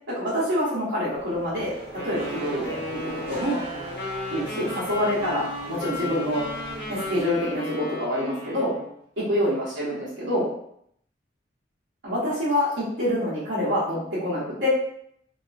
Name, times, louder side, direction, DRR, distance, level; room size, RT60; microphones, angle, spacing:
voice 1, 0.1-3.6 4.3-6.4 6.9-8.7 9.2-10.5 12.0-14.7, equal, 75° right, -12 dB, 1.0 m, -26 dB
Race car auto racing / Accelerating revving vroom, 1.0-7.7, right 2 dB, 30° right, 0.7 m, -40 dB
Wind instrument woodwind instrument, 1.9-8.9, left 2 dB, 60° left, 1.0 m, -35 dB
2.7 x 2.3 x 2.5 m, 0.71 s
head